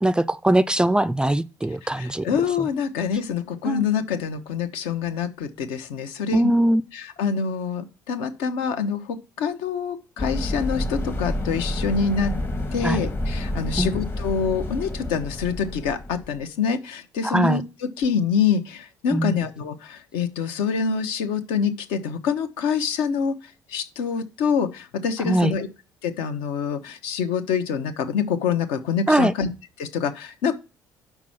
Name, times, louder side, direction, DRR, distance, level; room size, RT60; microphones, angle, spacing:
voice 1, 0.0-2.3 3.6-3.8 6.3-6.8 12.8-13.1 13.8-13.9 17.2-17.6 19.1-19.4 25.3-25.5 29.1-29.3, right 1 dB, 10° right, 0.3 m, -21 dB
voice 2, 1.8-6.5 6.9-12.3 12.7-25.7 26.0-29.5 29.8-30.5, left 6 dB, 65° left, 0.8 m, -26 dB
sound 1, 10.2-16.4, left 1 dB, 25° left, 1.0 m, -29 dB
6.0 x 4.5 x 5.7 m
figure-of-eight pair, 50°, 9 cm